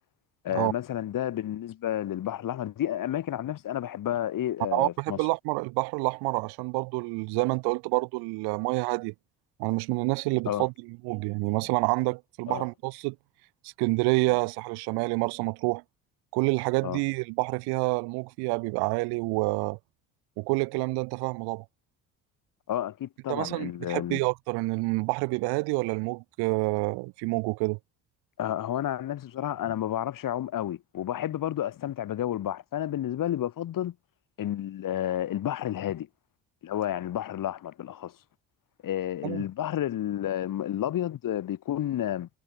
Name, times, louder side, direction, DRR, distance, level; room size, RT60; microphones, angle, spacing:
voice 1, 0.4-5.2 10.4-10.7 12.5-12.6 16.8-17.0 22.7-24.2 28.4-33.9 34.4-36.1 36.6-38.1 38.8-42.3, left 11 dB, 50° left, 3.2 m, -31 dB
voice 2, 4.7-9.1 9.6-13.2 13.6-15.8 16.3-19.8 20.4-21.6 23.3-27.8 39.2-39.4, right 29 dB, 65° right, 1.9 m, -28 dB
figure-of-eight pair, 50°, 42 cm